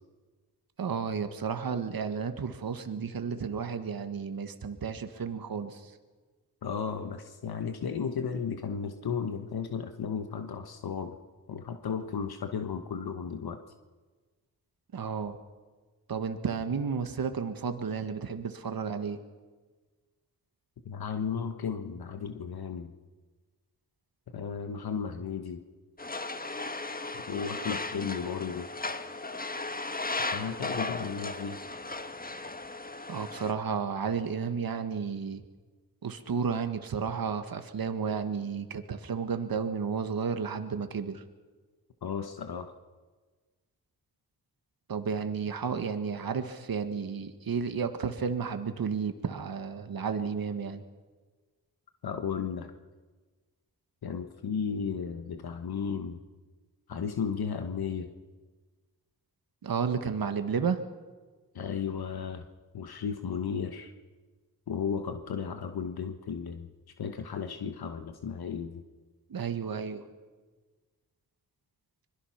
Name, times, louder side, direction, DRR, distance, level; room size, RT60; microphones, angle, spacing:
voice 1, 0.8-5.9 14.9-15.4 16.1-19.2 30.5-30.6 33.1-35.4 36.0-41.2 44.9-50.8 59.6-60.8 69.3-70.0, right 6 dB, 70° right, 8 dB, 1.7 m, -32 dB
voice 2, 6.6-11.1 11.5-13.6 20.8-22.9 24.3-25.6 27.1-28.7 30.3-31.6 42.0-42.7 52.0-52.7 54.0-56.2 56.9-58.1 61.5-62.4 62.7-63.9 64.7-66.7 67.0-68.8, left 6 dB, 80° left, 7 dB, 1.4 m, -34 dB
sound 1, 26.0-33.5, left 3 dB, 25° left, 1.4 m, -36 dB
25.5 x 22.0 x 5.9 m, 1.3 s
cardioid pair, 50°, 37 cm